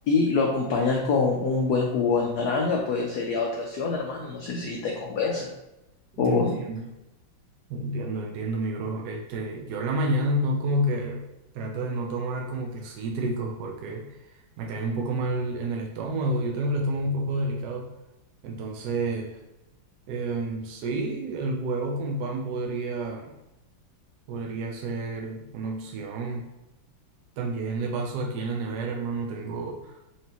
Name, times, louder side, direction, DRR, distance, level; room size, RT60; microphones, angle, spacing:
voice 1, 0.1-5.5 6.2-6.6, left 4 dB, 75° left, 0 dB, 0.9 m, -25 dB
voice 2, 7.7-11.3 11.5-17.9 18.4-19.4 20.1-23.3 24.3-26.5 27.4-30.0, right 2 dB, 70° right, 0 dB, 1.0 m, -30 dB
4.4 x 2.7 x 2.9 m, 0.95 s
omnidirectional pair, 2.1 m